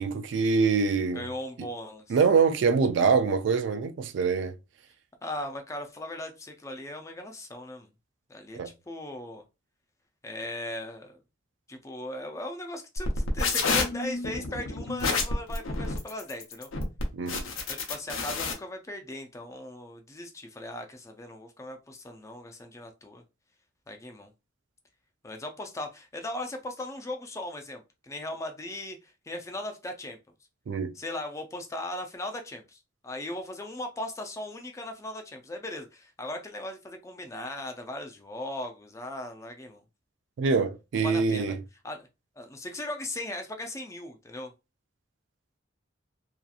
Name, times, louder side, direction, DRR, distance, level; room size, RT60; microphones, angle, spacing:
voice 1, 0.0-1.2 2.1-4.6 8.6-8.7 17.1-17.5 30.7-30.9 40.4-41.5, right 5 dB, 65° right, 0.3 m, -24 dB
voice 2, 1.1-2.2 5.2-7.9 8.3-8.6 8.9-9.4 10.2-11.2 11.7-16.7 17.7-23.2 23.9-24.3 25.2-30.2 30.9-39.8 41.0-41.6 41.8-42.1 42.4-44.5, left 1 dB, 15° left, 0.4 m, -38 dB
sound 1, 13.0-18.5, left 4 dB, 90° left, 0.7 m, -29 dB
2.8 x 2.3 x 2.3 m
head